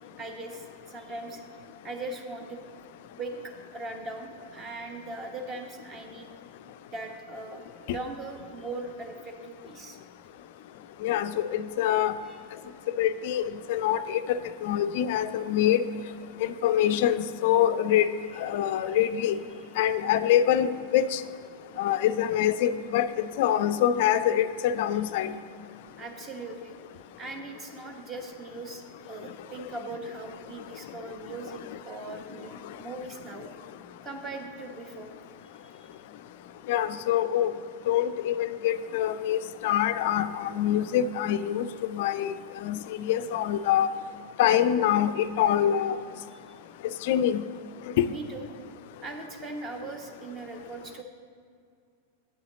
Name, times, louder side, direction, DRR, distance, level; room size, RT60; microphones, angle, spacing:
voice 1, 0.2-1.4 1.8-2.6 3.2-6.3 6.9-10.0 12.2-12.4 18.5-19.0 26.0-26.8 27.2-33.5 34.0-35.1 35.7-35.9 46.3-46.4 48.0-48.5 49.0-51.0, right 2 dB, 25° right, 4 dB, 1.0 m, -40 dB
voice 2, 11.0-12.1 13.0-15.8 16.4-18.1 18.4-19.4 19.8-21.2 21.8-23.1 23.4-25.3 36.7-37.5 37.9-41.7 41.9-42.3 42.6-43.9 44.4-46.0 47.0-47.4 48.0-48.1, left 10 dB, 50° left, 12 dB, 0.3 m, -25 dB
8.9 x 6.9 x 3.9 m, 2.3 s
figure-of-eight pair, 90°, 0 cm